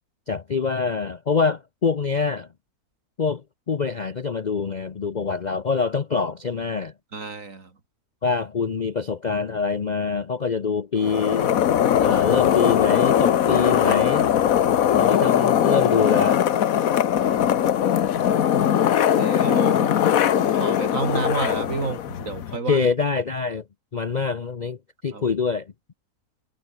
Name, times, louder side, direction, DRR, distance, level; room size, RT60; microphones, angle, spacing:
voice 1, 0.3-2.5 3.2-3.4 3.7-6.9 8.2-11.5 12.0-14.3 15.0-16.4 22.5-23.6 23.9-24.8 25.0-25.7, left 5 dB, 40° left, 0.6 m, -25 dB
voice 2, 7.1-7.7 17.3-19.9 20.4-22.9 25.1-25.2, right 4 dB, 55° right, 3.0 m, -31 dB
sound 1, 11.0-22.6, left 10 dB, 65° left, 1.3 m, -20 dB
omnidirectional pair, 1.6 m